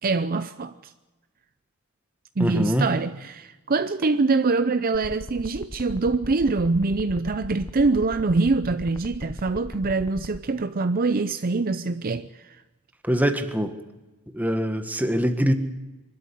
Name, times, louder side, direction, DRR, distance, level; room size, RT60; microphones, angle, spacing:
voice 1, 0.0-0.9 2.4-12.6, right 3 dB, 40° right, 0.6 m, -24 dB
voice 2, 2.4-2.9 13.0-13.8 14.3-15.5, equal, 10° right, 1.5 m, -23 dB
sound 1, 4.9-10.4, left 1 dB, 15° left, 0.8 m, -37 dB
24.0 x 13.0 x 9.9 m
head